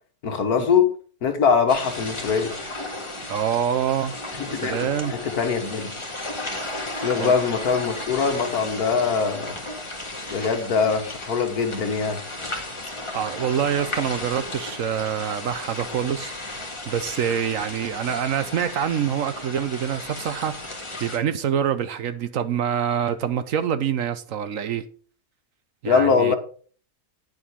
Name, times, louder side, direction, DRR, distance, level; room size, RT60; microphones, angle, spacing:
voice 1, 0.2-0.9 1.2-2.5 4.4-5.9 6.9-9.6 10.3-12.2 25.9-26.4, left 6 dB, 75° left, 1.8 m, -22 dB
sound 1, 1.7-21.2, left 2 dB, 20° left, 1.8 m, -34 dB
voice 2, 3.3-4.1 4.5-5.2 6.6-6.7 7.2-7.4 13.1-16.6 16.9-24.9 25.8-26.3, right 8 dB, 65° right, 1.0 m, -26 dB
9.4 x 7.2 x 5.1 m
omnidirectional pair, 1.7 m